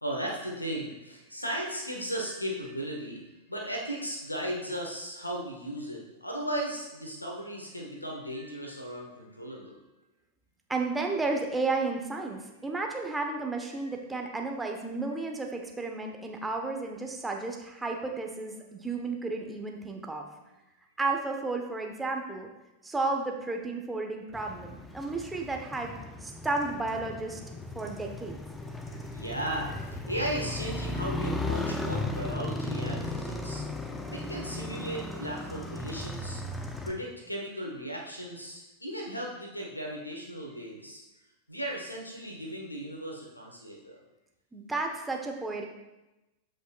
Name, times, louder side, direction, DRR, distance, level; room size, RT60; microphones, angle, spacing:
voice 1, 0.0-9.8 29.1-29.7 30.0-33.6 34.1-36.4 36.8-41.0 41.5-44.0, right 1 dB, 85° left, 1 dB, 1.5 m, -36 dB
voice 2, 10.7-20.2 21.0-22.5 22.8-25.9 26.2-27.4 27.7-28.4 44.5-45.7, right 3 dB, 10° right, 2 dB, 1.0 m, -32 dB
Motorcycle, 24.3-36.9, left 2 dB, 5° left, 0.8 m, -36 dB
13.5 x 5.2 x 2.4 m, 1.0 s
figure-of-eight pair, 90°, 0 cm